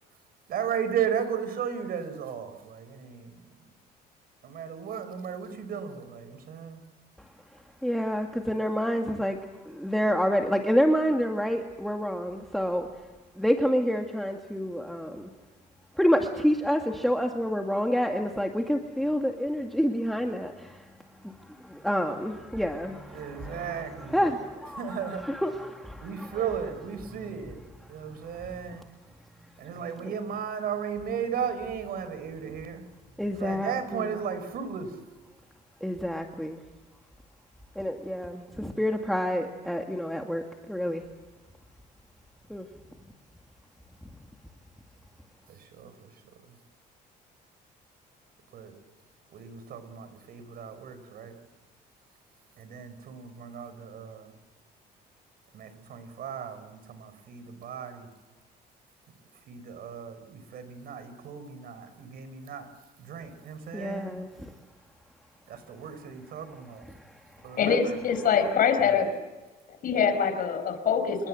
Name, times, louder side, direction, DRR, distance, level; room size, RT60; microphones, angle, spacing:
voice 1, 0.5-3.5 4.4-6.8 23.1-24.2 24.7-25.2 26.0-27.6 27.9-28.9 29.6-32.8 33.3-35.0 45.5-46.2 46.5-46.6 48.5-48.7 49.3-51.4 52.6-54.3 55.5-58.1 59.5-62.7 63.0-64.2 65.5-66.8 67.4-68.0 68.8-69.0, right 7 dB, 65° right, 10 dB, 5.4 m, -35 dB
voice 2, 7.8-9.4 9.7-12.9 13.4-15.3 16.0-20.8 21.2-21.3 21.6-23.8 24.1-24.8 25.2-26.3 33.2-34.0 35.8-36.6 37.8-40.4 40.7-41.0 42.5-42.7 63.7-64.3 66.9-67.0, equal, ahead, 3 dB, 2.2 m, -28 dB
voice 3, 67.6-69.1 69.8-71.3, left 7 dB, 55° left, 8 dB, 5.2 m, -24 dB
28.5 x 21.5 x 7.8 m, 1.2 s
cardioid pair, 110°, 17 cm